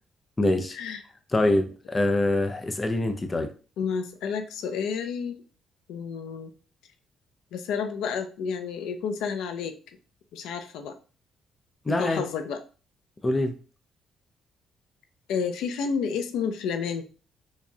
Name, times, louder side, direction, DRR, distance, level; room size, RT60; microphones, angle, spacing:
voice 1, 0.4-0.8 1.3-3.5 11.9-12.2 13.2-13.5, left 2 dB, 25° left, 6 dB, 0.5 m, -24 dB
voice 2, 3.8-5.4 5.9-6.5 7.5-9.8 10.3-10.9 12.0-12.6 15.3-17.0, left 6 dB, 90° left, 7 dB, 0.5 m, -30 dB
4.7 x 2.3 x 2.7 m, 0.36 s
cardioid pair, 90°, 0 cm